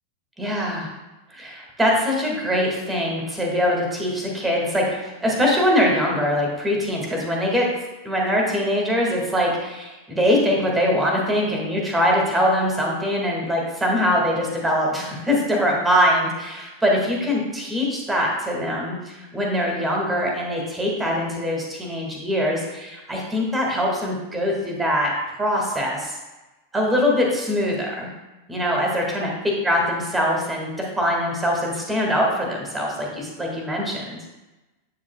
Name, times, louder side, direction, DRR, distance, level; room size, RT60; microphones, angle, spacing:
voice 1, 0.4-0.9 1.3-7.7 8.0-26.2 26.7-28.1 28.5-29.3 29.6-34.2, equal, 10° right, -1 dB, 2.0 m, -23 dB
8.3 x 7.2 x 2.3 m, 1.1 s
figure-of-eight pair, 90°, 0 cm